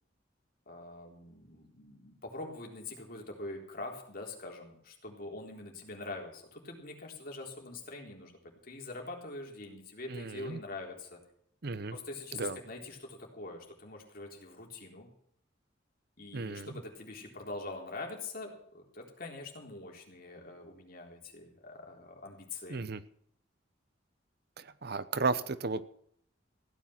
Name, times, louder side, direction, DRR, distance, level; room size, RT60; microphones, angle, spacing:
voice 1, 0.7-8.4 8.6-11.2 11.9-15.1 16.2-22.8, left 2 dB, 50° left, 1 dB, 3.8 m, -44 dB
voice 2, 10.1-10.6 11.6-12.0 12.3-12.6 16.3-16.7 22.7-23.0 24.6-25.9, right 4 dB, 55° right, 15 dB, 0.8 m, -34 dB
16.5 x 9.8 x 6.0 m, 0.66 s
head